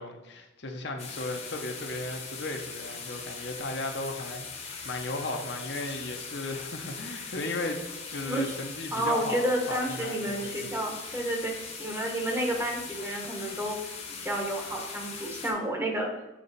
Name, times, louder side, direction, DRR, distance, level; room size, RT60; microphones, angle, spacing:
voice 1, 0.0-7.8 8.1-10.7, left 2 dB, 60° left, 3 dB, 0.8 m, -36 dB
sound 1, 1.0-15.5, left 5 dB, 35° left, 1.0 m, -40 dB
voice 2, 8.9-13.8 14.1-16.1, right 1 dB, 15° right, 1 dB, 0.9 m, -30 dB
7.5 x 4.2 x 4.0 m, 0.99 s
head